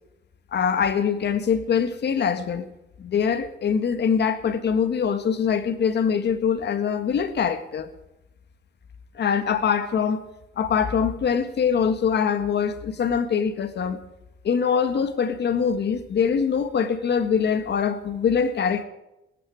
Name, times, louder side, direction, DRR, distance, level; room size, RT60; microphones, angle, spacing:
voice 1, 0.5-2.7 3.0-7.9 9.2-10.2 10.6-14.0 14.4-18.8, left 7 dB, 60° left, 10 dB, 1.9 m, -23 dB
17.5 x 14.0 x 4.9 m, 0.92 s
cardioid pair, 90°, 20 cm